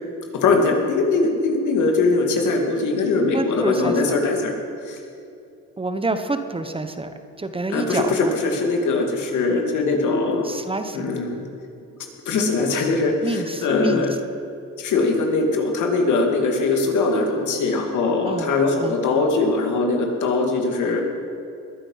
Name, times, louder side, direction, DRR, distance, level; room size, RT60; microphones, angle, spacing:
voice 1, 0.3-4.5 4.8-5.0 7.7-10.4 10.9-11.4 12.3-14.1 14.8-21.0, left 3 dB, 75° left, 2 dB, 2.5 m, -21 dB
voice 2, 3.3-4.2 5.8-7.1 7.4-8.3 10.4-11.2 13.2-14.0 18.3-18.5 18.8-19.0, right 2 dB, 20° right, 8 dB, 1.1 m, -27 dB
21.0 x 9.8 x 5.7 m, 2.6 s
cardioid pair, 90°, 30 cm